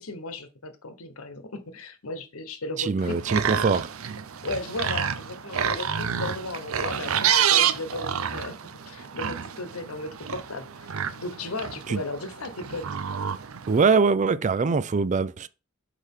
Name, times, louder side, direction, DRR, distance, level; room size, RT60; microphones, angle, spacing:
voice 1, 0.0-3.2 4.4-8.6 8.9-12.9, left 2 dB, 90° left, 1.1 m, -35 dB
voice 2, 2.8-3.9 11.9-12.0 13.7-15.5, right 4 dB, 35° right, 0.4 m, -23 dB
sound 1, 3.0-13.8, right 8 dB, 75° right, 0.6 m, -29 dB
6.4 x 4.9 x 3.7 m
head